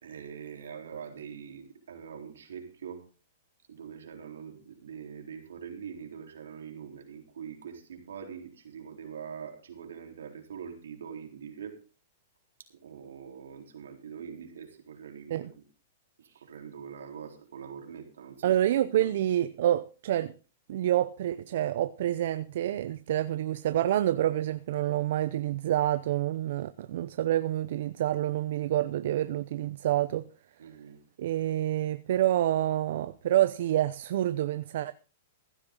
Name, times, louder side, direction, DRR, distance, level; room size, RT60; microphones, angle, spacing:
voice 1, 0.0-3.0 3.7-11.8 12.8-15.6 16.2-18.5 19.0-19.1 30.6-31.0, right 7 dB, 85° right, 3.8 m, -43 dB
voice 2, 18.4-20.3 20.7-30.2 31.2-34.9, right 12 dB, 65° right, 0.7 m, -27 dB
15.5 x 12.0 x 3.9 m
hypercardioid pair, 130°, 0 cm